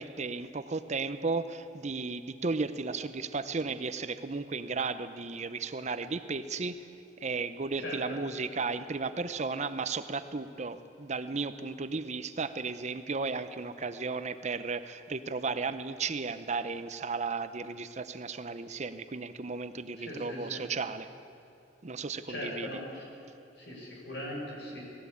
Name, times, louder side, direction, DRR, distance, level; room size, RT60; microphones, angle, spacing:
voice 1, 0.0-6.9 7.2-21.1 21.8-22.7, right 4 dB, 40° right, 11 dB, 0.7 m, -34 dB
voice 2, 20.0-20.6 22.3-23.0 23.6-24.8, left 1 dB, 70° left, -2 dB, 6.2 m, -40 dB
19.0 x 16.0 x 8.6 m, 2.8 s
head